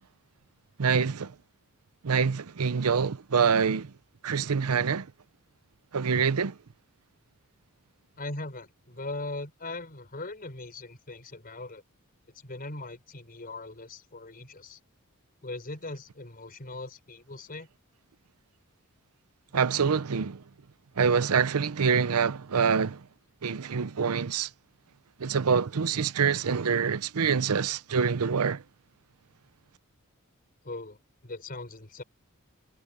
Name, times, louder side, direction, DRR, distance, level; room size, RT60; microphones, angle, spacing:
voice 1, 0.8-1.3 2.0-3.9 4.2-5.1 5.9-6.5 19.5-20.4 21.0-23.0 23.4-24.5 25.2-28.6, right 6 dB, 90° right, 0.7 m, -25 dB
voice 2, 8.2-11.8 12.3-14.8 15.4-17.7 30.6-32.0, left 2 dB, 40° left, 4.8 m, -40 dB
head